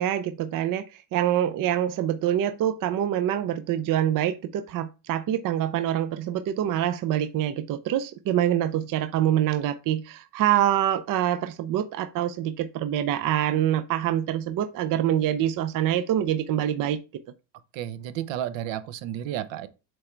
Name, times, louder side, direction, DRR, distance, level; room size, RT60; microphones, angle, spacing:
voice 1, 0.0-17.0, right 11 dB, 40° right, 0.6 m, -25 dB
voice 2, 17.7-19.7, right 11 dB, 65° right, 0.9 m, -32 dB
7.7 x 3.3 x 4.5 m
cardioid pair, 120°, 49 cm